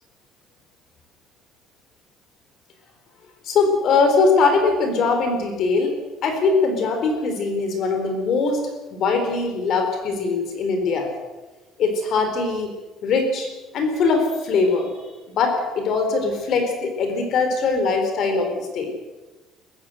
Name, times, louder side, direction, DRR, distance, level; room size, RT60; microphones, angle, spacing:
voice 1, 3.4-8.6 8.9-11.1 11.8-12.7 13.0-13.5 13.7-14.9 15.3-18.9, left 4 dB, 45° left, 5 dB, 4.1 m, -21 dB
21.5 x 15.0 x 8.0 m, 1.2 s
cardioid pair, 165°, 0 cm